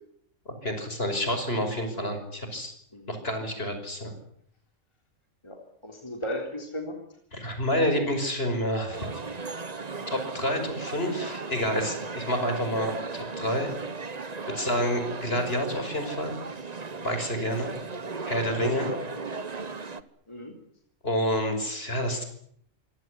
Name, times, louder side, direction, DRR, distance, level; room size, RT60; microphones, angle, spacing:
voice 1, 0.5-2.7 3.1-4.1 7.3-9.1 10.1-13.7 14.5-16.4 17.0-17.7 18.3-18.9 21.0-22.2, equal, 50° left, 7 dB, 5.9 m, -28 dB
voice 2, 5.4-7.0 9.9-10.0 13.0-13.1 17.6-17.8 18.2-19.0 19.3-19.4 20.3-20.5, equal, 20° left, 2 dB, 3.7 m, -36 dB
sound 1, 8.9-20.0, right 4 dB, 30° right, 1.2 m, -36 dB
26.0 x 17.5 x 9.8 m, 0.70 s
omnidirectional pair, 1.4 m